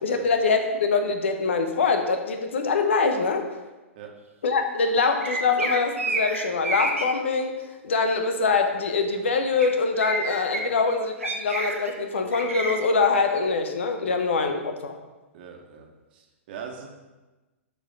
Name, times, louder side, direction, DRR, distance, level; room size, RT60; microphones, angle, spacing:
voice 1, 0.0-3.4 4.4-7.5 7.8-14.9, left 4 dB, 65° left, 6 dB, 0.9 m, -24 dB
sound 1, 5.2-7.0 9.6-9.7 10.0-10.6 11.2-11.9 12.3-12.7, right 2 dB, 80° right, 1.2 m, -29 dB
voice 2, 15.3-15.8 16.1-16.9, right 7 dB, 50° right, 2 dB, 1.5 m, -40 dB
12.5 x 4.7 x 3.8 m, 1.1 s
figure-of-eight pair, 105°, 7 cm